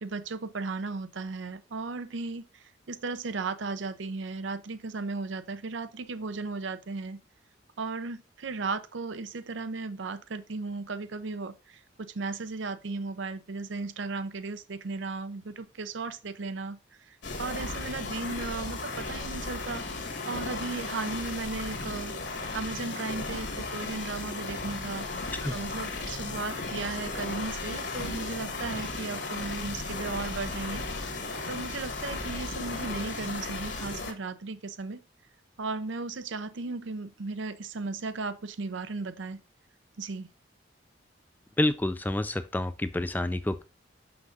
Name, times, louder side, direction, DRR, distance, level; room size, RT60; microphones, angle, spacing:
voice 1, 0.0-7.2 7.8-19.8 20.2-25.1 25.5-30.9 31.2-35.0 35.6-39.4 40.0-40.3, right 3 dB, 75° right, 0.6 m, -36 dB
sound 1, 17.2-34.1, left 3 dB, 60° left, 1.6 m, -35 dB
voice 2, 41.6-43.6, left 1 dB, 10° left, 0.3 m, -28 dB
6.4 x 6.0 x 3.8 m
head